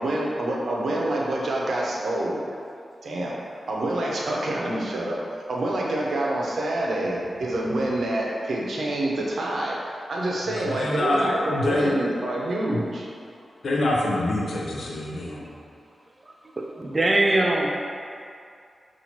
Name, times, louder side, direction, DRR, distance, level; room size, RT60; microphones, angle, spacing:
voice 1, 0.0-2.4 3.0-3.3 3.7-5.2 5.5-9.8 10.1-13.1, right 1 dB, 75° right, -3 dB, 0.7 m, -27 dB
voice 2, 10.8-11.9 12.7-12.8 13.6-15.5, left 1 dB, 75° left, -3 dB, 0.5 m, -25 dB
voice 3, 16.2-17.8, right 2 dB, 35° right, 0 dB, 0.4 m, -23 dB
5.7 x 2.5 x 2.9 m, 2.4 s
cardioid pair, 65°, 0 cm